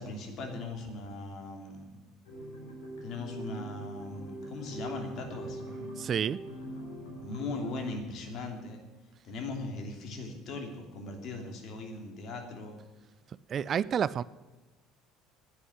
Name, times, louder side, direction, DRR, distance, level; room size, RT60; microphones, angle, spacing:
voice 1, 0.0-2.1 3.0-5.6 7.2-8.8 9.2-12.8, left 2 dB, 55° left, 3 dB, 3.0 m, -39 dB
sound 1, 2.3-7.9, right 1 dB, 80° left, 3.6 m, -43 dB
voice 2, 6.0-6.4 13.5-14.2, right 8 dB, 45° right, 20 dB, 0.4 m, -29 dB
9.9 x 9.7 x 9.8 m, 1.2 s
hypercardioid pair, 70°, 0 cm